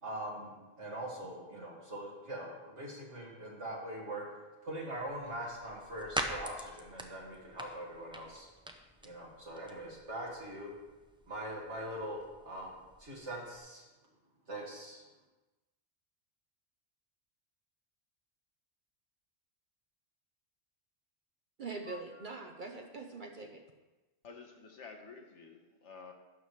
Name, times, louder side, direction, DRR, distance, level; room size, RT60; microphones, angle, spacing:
voice 1, 0.0-4.3 4.6-8.5 9.0-10.7 11.3-12.7 13.0-13.8 14.5-15.0, right 1 dB, 75° right, 2.3 m, -42 dB
sound 1, 4.9-13.6, right 1 dB, 10° right, 0.3 m, -45 dB
voice 2, 21.6-23.6, right 3 dB, 50° right, 0.7 m, -43 dB
voice 3, 24.2-26.1, left 5 dB, 75° left, 1.3 m, -51 dB
11.5 x 6.9 x 3.2 m
omnidirectional pair, 1.2 m